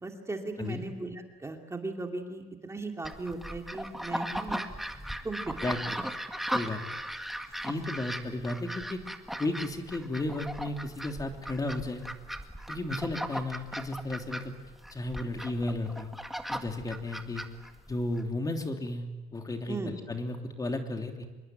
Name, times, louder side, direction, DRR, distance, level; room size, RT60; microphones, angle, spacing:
voice 1, 0.0-4.7 5.2-5.5 19.7-19.9, right 3 dB, 15° right, 3 dB, 2.6 m, -37 dB
sound 1, 3.0-18.2, equal, ahead, 1.9 m, -37 dB
voice 2, 7.6-9.0 9.4-12.0 12.7-14.6 14.9-16.1 16.5-17.4 17.9-19.0 19.3-21.3, left 2 dB, 20° left, 4 dB, 3.1 m, -33 dB
26.0 x 22.5 x 9.2 m, 1.2 s
cardioid pair, 110°, 17 cm